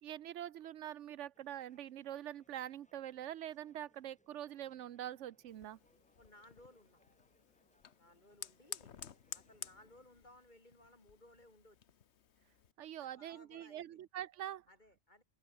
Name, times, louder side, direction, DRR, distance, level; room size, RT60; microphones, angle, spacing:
voice 1, 0.0-5.8 12.8-14.6, right 11 dB, 80° right, 1.1 m, -45 dB
sound 1, 1.3-9.7, equal, 5° left, 5.0 m, -75 dB
Fire, 5.5-12.7, left 8 dB, 65° left, 1.3 m, -53 dB
voice 2, 6.2-7.0 8.0-9.0 9.3-11.9 12.8-14.0 14.7-15.2, left 1 dB, 40° left, 5.9 m, -62 dB
open air
omnidirectional pair, 1.2 m